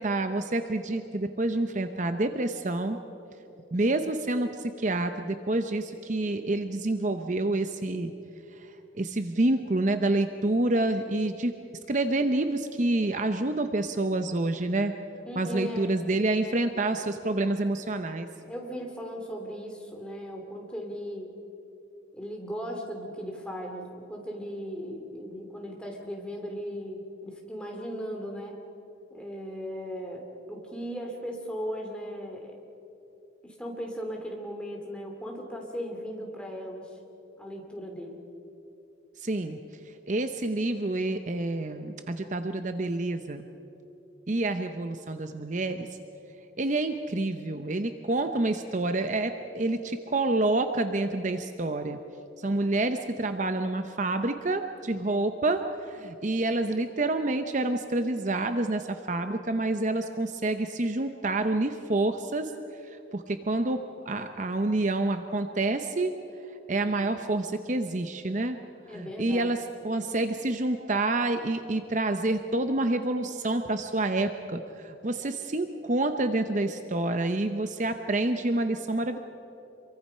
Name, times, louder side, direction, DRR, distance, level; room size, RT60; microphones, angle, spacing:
voice 1, 0.0-3.0 3.7-8.1 8.6-8.7 9.0-11.5 11.9-14.9 15.4-18.3 39.2-39.6 40.1-43.5 44.3-45.9 46.6-52.0 52.4-62.5 62.9-66.1 66.7-68.6 68.9-79.2, right 2 dB, 40° right, 8 dB, 0.7 m, -28 dB
voice 2, 15.2-15.9 18.5-21.3 22.1-28.6 29.1-30.2 30.5-32.6 33.4-36.9 37.4-38.2 68.9-69.5, equal, 5° left, 1 dB, 2.7 m, -37 dB
26.5 x 23.0 x 5.6 m, 3.0 s
head